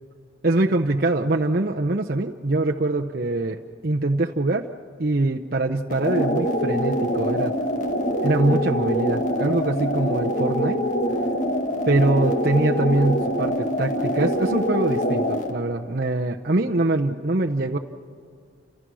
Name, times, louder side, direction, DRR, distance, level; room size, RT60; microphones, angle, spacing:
voice 1, 0.4-4.7 5.0-7.5 8.2-10.8 11.9-17.8, right 2 dB, 50° right, 1 dB, 0.8 m, -23 dB
sound 1, 5.9-15.5, equal, 40° left, 1.8 m, -24 dB
30.0 x 27.0 x 6.3 m, 2.2 s
head